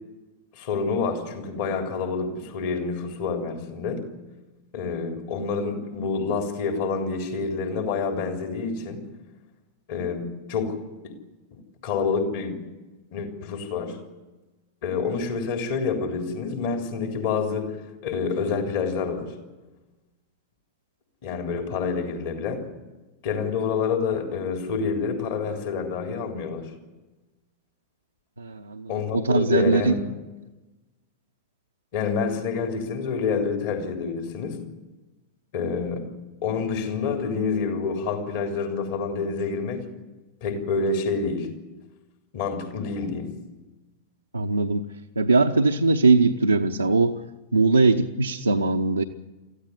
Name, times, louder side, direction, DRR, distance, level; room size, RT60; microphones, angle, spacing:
voice 1, 0.5-4.1 4.7-9.1 9.9-11.2 11.5-12.7 13.1-14.0 14.8-17.8 18.0-19.3 21.2-22.7 23.2-26.7 28.9-30.0 31.9-34.6 35.5-36.1 36.4-39.9 40.4-41.5 42.3-43.3, left 5 dB, 50° left, 4 dB, 3.7 m, -28 dB
voice 2, 28.4-29.9 44.3-44.9 45.2-47.2 47.5-49.0, right 3 dB, 85° right, 1 dB, 0.9 m, -21 dB
24.5 x 15.0 x 9.7 m, 1.1 s
figure-of-eight pair, 90°, 0 cm